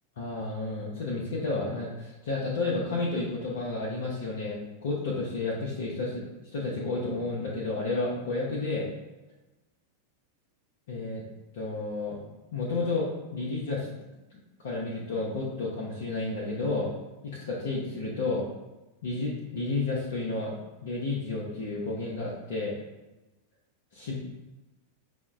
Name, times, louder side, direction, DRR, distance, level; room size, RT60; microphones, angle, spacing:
voice 1, 0.2-6.3 6.5-8.9 10.9-11.2 11.5-12.2 12.5-13.9 14.6-16.9 17.2-18.4 19.0-20.6 20.8-22.8 23.9-24.1, left 3 dB, 60° left, -5 dB, 0.6 m, -31 dB
5.9 x 2.1 x 2.4 m, 1.1 s
figure-of-eight pair, 90°, 0 cm